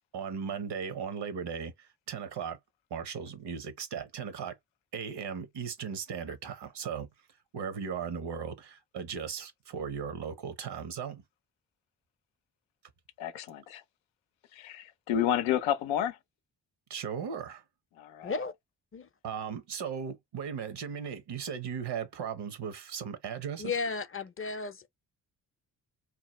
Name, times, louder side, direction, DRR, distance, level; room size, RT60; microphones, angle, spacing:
voice 1, 0.1-2.6 2.9-4.6 4.9-7.1 7.5-11.2 16.9-17.6 19.2-23.7, right 7 dB, 60° right, 0.9 m, -37 dB
voice 2, 13.2-13.8 14.5-16.2 17.9-18.3, left 10 dB, 85° left, 0.6 m, -30 dB
voice 3, 18.2-18.5 18.9-19.1 23.6-24.9, left 4 dB, 30° left, 0.5 m, -34 dB
2.8 x 2.0 x 3.0 m
supercardioid pair, 45°, 45 cm